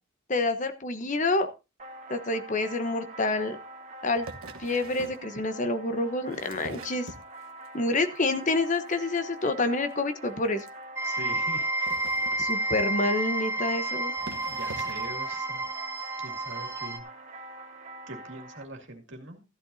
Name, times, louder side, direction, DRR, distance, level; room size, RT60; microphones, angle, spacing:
voice 1, 0.3-1.5 2.1-3.6 4.0-4.3 4.6-7.1 7.7-10.6 12.4-14.1, left 2 dB, 35° left, 9 dB, 1.0 m, -28 dB
sound 1, 1.8-18.6, right 2 dB, 35° right, 1.4 m, -45 dB
sound 2, 4.2-5.3 6.1-7.7 8.1-8.5 8.7-8.9 9.2-9.3 9.5-9.6 9.9-10.0 10.6-10.7 11.6-13.0 13.7-13.8 14.1-15.2 16.0-16.1, right 2 dB, 80° right, 1.3 m, -44 dB
sound 3, 11.0-17.0, right 1 dB, 10° right, 0.8 m, -30 dB
voice 2, 11.0-11.7 12.1-12.3 13.6-13.7 14.4-15.7 16.2-17.5 18.1-19.4, right 2 dB, 55° right, 3 dB, 2.5 m, -43 dB
14.5 x 11.0 x 2.7 m, 0.28 s
head